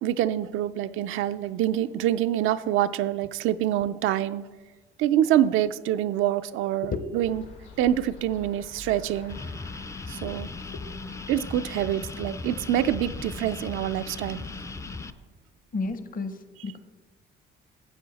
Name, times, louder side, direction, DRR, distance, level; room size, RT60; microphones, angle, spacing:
voice 1, 0.0-4.4 5.0-7.4 7.8-9.4 10.1-10.5 11.3-14.5, right 12 dB, 85° right, 12 dB, 0.4 m, -26 dB
sound 1, 7.2-15.1, left 4 dB, 85° left, 2.9 m, -45 dB
sound 2, 9.3-15.1, left 3 dB, 15° left, 0.4 m, -38 dB
voice 2, 15.7-16.8, left 4 dB, 45° left, 10 dB, 0.9 m, -32 dB
12.0 x 7.8 x 4.1 m, 1.3 s
cardioid pair, 90°, 20 cm